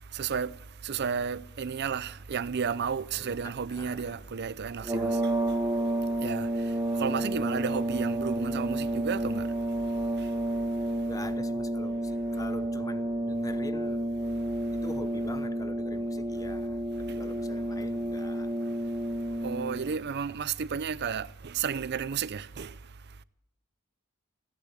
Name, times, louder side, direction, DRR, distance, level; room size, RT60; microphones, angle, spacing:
voice 1, 0.2-0.5 0.8-5.1 6.2-6.5 7.0-9.5 19.4-22.7, right 6 dB, 55° right, 0.5 m, -32 dB
voice 2, 3.1-4.3 4.8-5.1 11.0-14.0 14.7-18.5, left 2 dB, 15° left, 0.9 m, -44 dB
sound 1, 4.8-19.9, right 1 dB, 15° right, 1.4 m, -30 dB
15.5 x 10.5 x 8.2 m
head